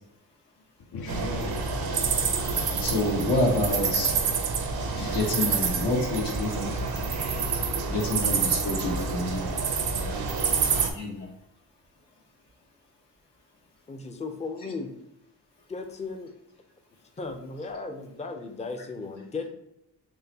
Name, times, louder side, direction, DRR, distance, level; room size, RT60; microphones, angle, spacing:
sound 1, 0.8-5.6, left 2 dB, 60° left, 0.7 m, -43 dB
sound 2, 1.1-10.9, right 5 dB, 65° right, 0.7 m, -27 dB
voice 1, 2.8-4.1 4.9-6.7 7.9-9.4 10.0-10.1 10.9-11.3 14.6-14.7, left 2 dB, 75° left, -2 dB, 1.3 m, -28 dB
voice 2, 13.9-15.0 15.7-16.3 17.2-19.5, left 3 dB, 15° left, 5 dB, 0.5 m, -36 dB
3.7 x 3.2 x 2.9 m, 0.85 s
cardioid pair, 55°, 40 cm